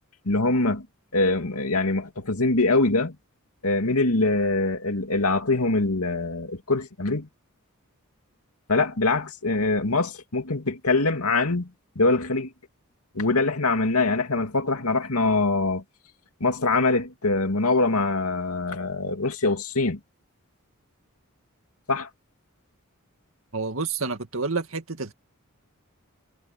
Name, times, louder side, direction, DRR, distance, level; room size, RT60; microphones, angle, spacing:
voice 1, 0.2-0.9 1.1-3.2 3.6-7.3 8.7-11.7 12.0-12.5 13.1-15.8 16.4-20.0 21.9-22.1, left 3 dB, 85° left, 2.5 m, -23 dB
voice 2, 23.5-25.1, right 4 dB, 65° right, 2.2 m, -29 dB
head